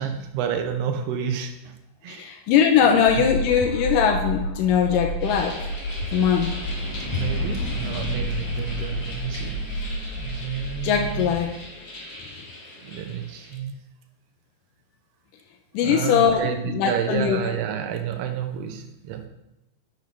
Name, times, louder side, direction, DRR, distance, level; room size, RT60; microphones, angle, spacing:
voice 1, 0.0-1.7 2.0-2.4 2.8-3.0 7.0-11.3 12.8-13.8 15.8-19.3, right 8 dB, 75° right, 5 dB, 1.5 m, -30 dB
voice 2, 2.1-5.6 6.1-6.5 10.8-11.5 15.7-16.4 16.7-17.4, left 8 dB, 85° left, 3 dB, 2.3 m, -20 dB
sound 1, 3.1-11.4, equal, 65° left, 2.7 m, -31 dB
sound 2, 5.2-13.6, left 1 dB, 35° left, 1.4 m, -39 dB
sound 3, 5.6-11.6, left 1 dB, 55° right, 2.7 m, -37 dB
10.5 x 6.4 x 3.3 m, 0.98 s
omnidirectional pair, 3.9 m